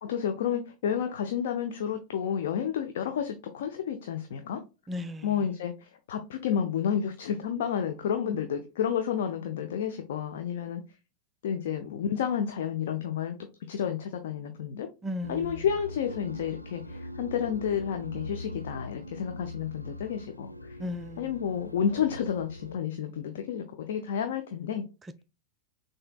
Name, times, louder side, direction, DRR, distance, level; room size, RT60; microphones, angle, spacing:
voice 1, 0.0-4.6 5.2-10.8 11.4-13.4 13.7-14.9 15.3-20.8 21.2-24.8, left 8 dB, 60° left, 0.5 m, -31 dB
voice 2, 4.9-5.5 15.0-15.7 20.8-21.5 25.0-25.2, left 1 dB, 15° right, 0.4 m, -37 dB
sound 1, 15.2-22.8, left 1 dB, 90° right, 0.4 m, -42 dB
6.5 x 2.8 x 2.3 m
figure-of-eight pair, 90°, 0 cm